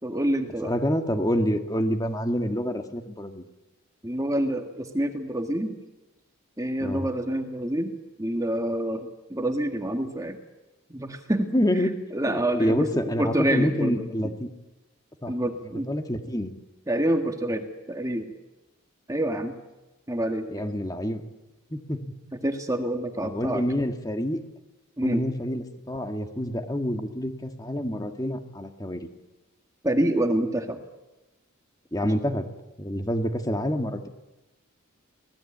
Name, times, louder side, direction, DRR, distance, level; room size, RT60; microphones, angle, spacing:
voice 1, 0.0-0.7 4.0-5.8 6.6-7.9 8.2-10.4 10.9-14.3 15.3-15.9 16.9-18.3 19.1-19.6 20.1-20.5 22.4-23.6 25.0-25.2 29.8-30.8, right 1 dB, 15° right, 5 dB, 1.7 m, -27 dB
voice 2, 0.6-3.4 6.8-7.1 11.5-12.0 12.2-14.5 15.2-15.3 15.9-16.6 20.5-21.2 21.7-22.0 23.2-24.4 25.0-29.1 31.9-32.4 32.8-34.1, equal, 15° left, 6 dB, 1.8 m, -27 dB
25.5 x 19.0 x 8.7 m, 1.1 s
head